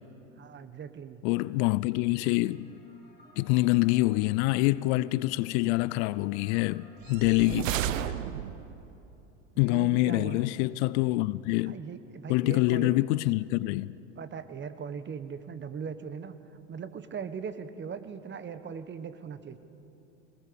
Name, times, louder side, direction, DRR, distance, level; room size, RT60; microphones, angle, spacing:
voice 1, 0.4-1.2 9.6-10.5 11.6-13.1 14.2-16.4 16.7-19.6, right 6 dB, 30° right, 1.4 m, -39 dB
voice 2, 1.2-2.7 3.4-7.9 9.6-11.7 12.3-13.9, left 20 dB, 60° left, 0.6 m, -26 dB
sound 1, 2.0-7.4, left 2 dB, 25° left, 3.8 m, -60 dB
sound 2, 7.0-8.8, right 11 dB, 80° right, 0.9 m, -32 dB
23.0 x 20.0 x 7.0 m
hypercardioid pair, 85°, 39 cm